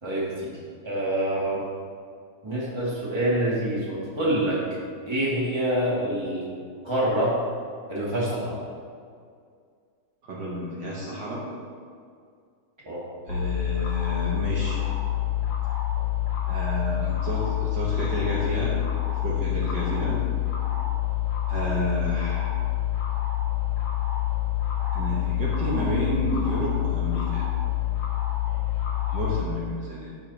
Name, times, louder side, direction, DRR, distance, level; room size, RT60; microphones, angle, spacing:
voice 1, 0.0-0.6 0.8-1.6 2.4-4.6 5.1-6.5 6.8-7.4 7.9-8.6 12.8-13.0 19.9-20.2, right 1 dB, 15° right, -8 dB, 2.1 m, -26 dB
voice 2, 10.2-11.4 13.3-14.8 16.5-18.8 19.2-20.2 21.5-22.5 24.9-27.5 29.1-30.2, right 1 dB, 60° right, -5 dB, 1.7 m, -30 dB
sound 1, 13.3-29.4, left 12 dB, 85° left, 2.5 m, -27 dB
12.5 x 6.4 x 2.9 m, 2.2 s
omnidirectional pair, 2.2 m